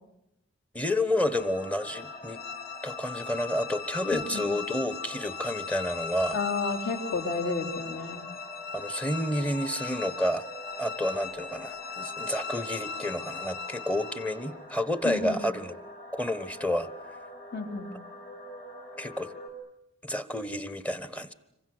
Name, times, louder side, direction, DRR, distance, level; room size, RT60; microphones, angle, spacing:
voice 1, 0.7-2.4 2.8-6.4 8.7-10.4 10.8-15.8 16.1-17.2 19.0-19.3 20.0-21.3, left 1 dB, 5° left, 14 dB, 1.1 m, -30 dB
sound 1, 1.2-14.6, left 6 dB, 70° left, 3.1 m, -39 dB
sound 2, 1.3-19.5, left 2 dB, 40° left, 6.2 m, -45 dB
voice 2, 4.1-4.5 6.3-8.3 15.0-15.4 17.5-17.9, left 3 dB, 55° left, 3 dB, 3.8 m, -31 dB
26.5 x 24.0 x 7.9 m, 0.86 s
head